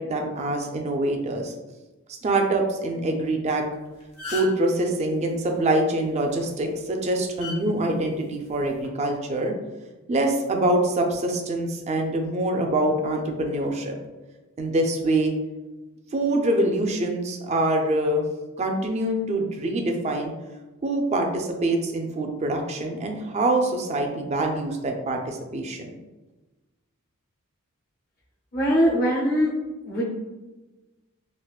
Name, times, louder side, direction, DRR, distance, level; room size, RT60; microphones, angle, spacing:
voice 1, 0.0-1.5 2.2-3.6 4.3-9.6 10.1-14.0 14.6-15.3 16.1-18.2 18.6-20.3 20.8-25.9, right 1 dB, 30° right, 2 dB, 0.4 m, -25 dB
sound 1, 3.6-4.7 6.3-6.5 7.4-7.6 8.6-8.9, left 3 dB, 90° left, 0.9 m, -34 dB
voice 2, 28.5-29.5 29.8-30.0, equal, 45° left, -4 dB, 0.7 m, -21 dB
3.5 x 2.4 x 2.3 m, 1.1 s
head